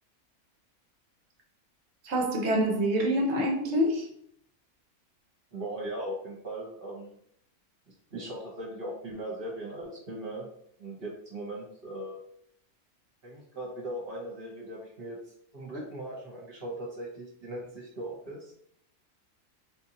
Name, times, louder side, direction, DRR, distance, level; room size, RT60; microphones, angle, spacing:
voice 1, 2.0-4.1, equal, 55° right, 0.9 m, -26 dB
voice 2, 5.5-7.2 8.1-10.4 10.8-12.2 13.2-15.2 15.5-18.5, right 1 dB, 40° right, 1.2 m, -39 dB
4.0 x 2.6 x 2.9 m
omnidirectional pair, 1.6 m